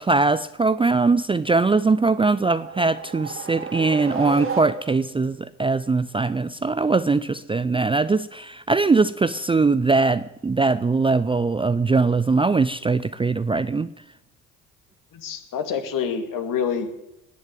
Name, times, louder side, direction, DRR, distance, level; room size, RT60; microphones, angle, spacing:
voice 1, 0.0-13.9, right 3 dB, 15° right, 0.5 m, -21 dB
sound 1, 1.9-5.2, right 5 dB, 35° right, 2.6 m, -33 dB
voice 2, 15.1-16.9, left 7 dB, 55° left, 2.2 m, -27 dB
18.5 x 6.6 x 9.1 m
hypercardioid pair, 65°, 39 cm